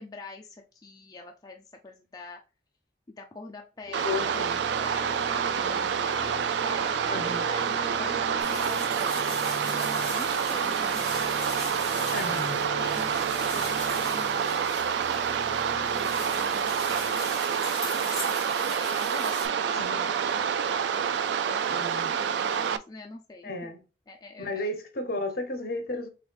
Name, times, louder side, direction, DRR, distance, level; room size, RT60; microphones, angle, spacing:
voice 1, 0.0-2.4 3.2-4.5 4.8-15.6 15.9-17.2 17.5-18.1 18.5-23.7 24.1-24.7, left 3 dB, 20° left, 0.4 m, -45 dB
sound 1, 3.8-18.0, equal, 35° right, 1.2 m, -42 dB
voice 2, 3.9-4.6 7.1-7.4 12.1-12.6 19.7-20.1 21.7-22.1 23.4-23.8 24.4-26.1, left 2 dB, 55° left, 0.8 m, -33 dB
sound 2, 3.9-22.8, right 7 dB, 75° right, 0.3 m, -28 dB
sound 3, 8.4-19.5, left 1 dB, ahead, 2.3 m, -40 dB
3.9 x 3.5 x 3.3 m
head